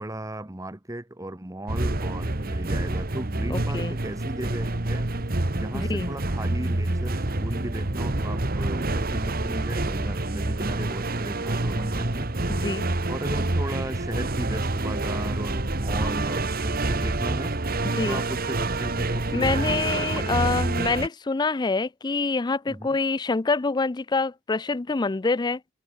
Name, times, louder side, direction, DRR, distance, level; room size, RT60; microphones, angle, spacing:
voice 1, 0.0-5.2 5.5-17.5 18.0-20.3 22.7-23.0, right 1 dB, 15° right, 1.2 m, -36 dB
sound 1, 1.7-21.1, right 2 dB, 50° right, 1.6 m, -27 dB
voice 2, 3.5-4.0 5.7-6.1 12.5-12.9 18.0-18.2 19.3-25.6, left 3 dB, 20° left, 0.4 m, -26 dB
head